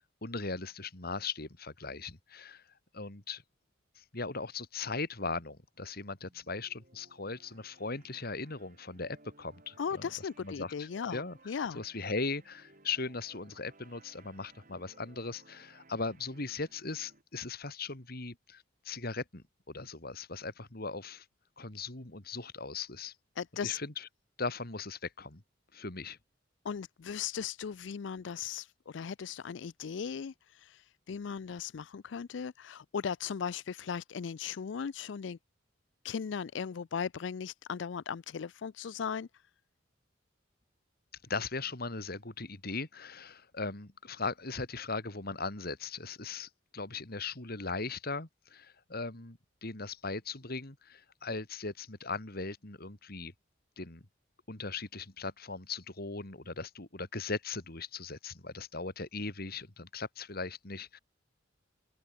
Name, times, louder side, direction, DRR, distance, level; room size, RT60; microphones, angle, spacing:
voice 1, 0.2-2.6 2.9-3.4 4.0-10.1 10.4-11.4 11.7-21.2 21.6-23.1 23.6-24.1 24.4-25.4 25.7-26.2 41.3-53.3 53.8-54.0 54.5-61.0, left 4 dB, 55° left, 2.8 m, -39 dB
sound 1, 6.1-17.2, right 2 dB, 45° right, 7.2 m, -61 dB
voice 2, 9.8-11.8 23.4-23.8 26.6-35.4 36.0-39.3, left 7 dB, 70° left, 0.4 m, -37 dB
open air
head